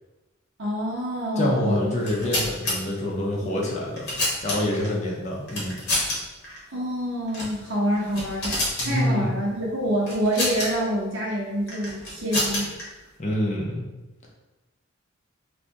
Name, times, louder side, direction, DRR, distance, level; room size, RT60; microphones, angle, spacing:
voice 1, 0.6-2.0 6.7-8.5 8.8-12.7, equal, 65° right, -5 dB, 1.0 m, -26 dB
voice 2, 1.4-4.1 4.4-5.8 8.8-9.3 13.2-13.8, left 1 dB, 35° left, -2 dB, 0.7 m, -26 dB
sound 1, 1.9-2.8 3.6-4.9 5.5-6.2 6.4-6.6 7.3-7.6 7.9-8.9 10.1-10.7 11.7-12.8, left 1 dB, 55° left, 1.1 m, -28 dB
2.6 x 2.6 x 3.5 m, 1.1 s
head